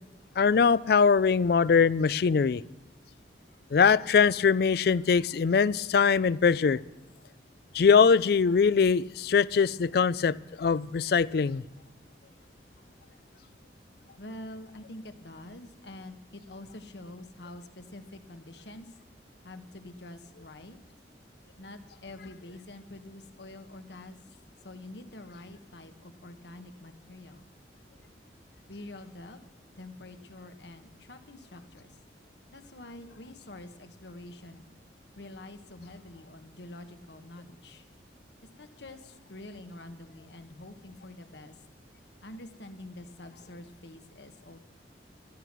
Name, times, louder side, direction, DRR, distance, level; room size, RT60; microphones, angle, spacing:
voice 1, 0.4-2.6 3.7-6.8 7.7-11.6, left 5 dB, 60° left, 21 dB, 0.4 m, -22 dB
voice 2, 14.2-18.9 19.4-20.8 21.6-24.2 24.6-27.5 28.7-29.4 29.8-32.0 32.5-34.7 35.1-37.8 38.4-41.6 42.2-44.6, left 1 dB, 75° left, 8 dB, 1.3 m, -46 dB
14.0 x 12.5 x 6.1 m, 1.1 s
head